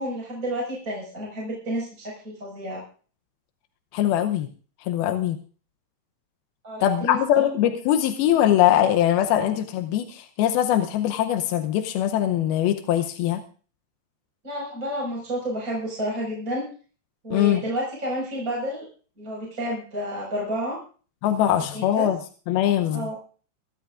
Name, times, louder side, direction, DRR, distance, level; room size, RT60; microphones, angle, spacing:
voice 1, 0.0-2.8 6.6-7.2 14.4-16.6 17.2-18.9 19.2-20.8 21.7-22.1 22.9-23.1, equal, 20° right, -3 dB, 5.6 m, -30 dB
voice 2, 3.9-4.5 4.8-5.4 6.8-13.4 17.3-17.6 21.2-22.2 22.5-23.1, left 11 dB, 90° left, 8 dB, 2.7 m, -22 dB
25.0 x 12.5 x 2.5 m, 0.39 s
omnidirectional pair, 4.2 m